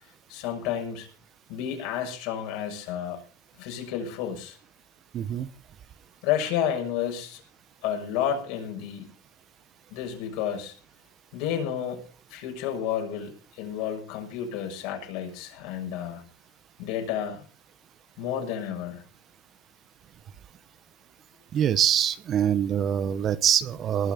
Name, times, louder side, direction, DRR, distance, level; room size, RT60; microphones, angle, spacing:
voice 1, 0.3-1.1 1.5-3.2 3.6-4.6 6.2-7.4 7.8-9.1 9.9-10.7 11.3-12.0 12.3-16.2 16.8-17.4 18.2-19.0, left 9 dB, 65° left, 3 dB, 6.4 m, -31 dB
voice 2, 5.1-5.5 21.5-24.1, right 9 dB, 40° right, 15 dB, 1.1 m, -24 dB
20.0 x 6.9 x 7.0 m, 0.39 s
supercardioid pair, 120°, 0 cm